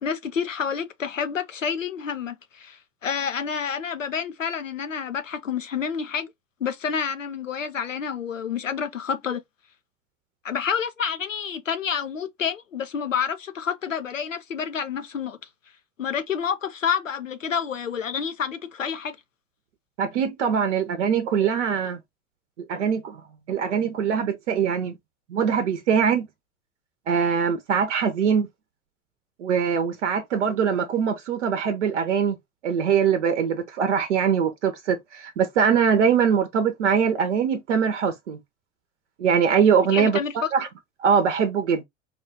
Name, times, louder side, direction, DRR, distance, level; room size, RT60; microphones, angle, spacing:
voice 1, 0.0-6.3 6.6-9.4 10.4-15.4 16.0-19.2 39.9-40.5, left 7 dB, 85° left, 0.6 m, -29 dB
voice 2, 20.0-22.0 22.7-23.2 23.5-25.0 25.3-26.3 27.1-28.5 29.4-32.4 32.6-38.4 39.2-40.7 41.0-41.8, right 7 dB, 70° right, 0.8 m, -22 dB
4.2 x 2.3 x 2.7 m
figure-of-eight pair, 75°, 37 cm